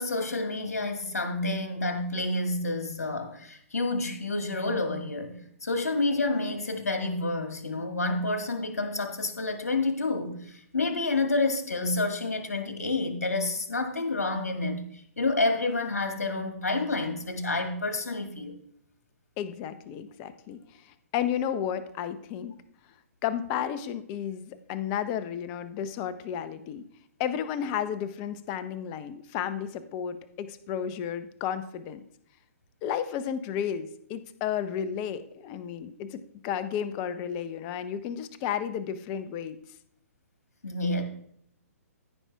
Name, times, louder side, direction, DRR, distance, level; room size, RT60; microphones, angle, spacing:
voice 1, 0.0-5.4 5.6-14.8 15.2-18.5 40.6-41.0, left 2 dB, 75° left, 5 dB, 1.9 m, -29 dB
voice 2, 19.4-22.5 23.2-26.8 27.2-32.0 32.8-39.6, left 9 dB, 30° left, 12 dB, 0.7 m, -32 dB
14.0 x 5.8 x 3.4 m, 0.70 s
figure-of-eight pair, 125°, 8 cm